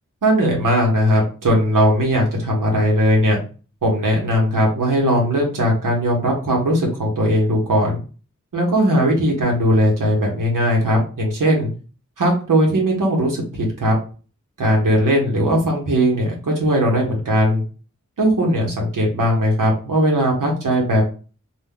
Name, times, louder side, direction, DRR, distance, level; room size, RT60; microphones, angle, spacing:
voice 1, 0.2-3.4 3.8-8.0 8.5-11.7 12.2-14.0 14.6-17.6 18.2-21.0, equal, 85° right, -1 dB, 0.8 m, -18 dB
2.1 x 2.1 x 3.5 m, 0.37 s
cardioid pair, 40°, 31 cm